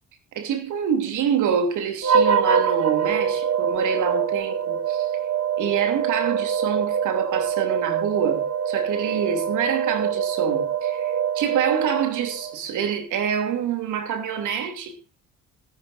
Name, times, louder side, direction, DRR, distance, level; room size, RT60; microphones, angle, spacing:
voice 1, 0.3-5.1 5.6-15.0, right 7 dB, 85° right, 3.0 m, -26 dB
sound 1, 2.0-12.6, right 7 dB, 50° right, 1.5 m, -24 dB
19.0 x 15.0 x 2.6 m
cardioid pair, 90°, 30 cm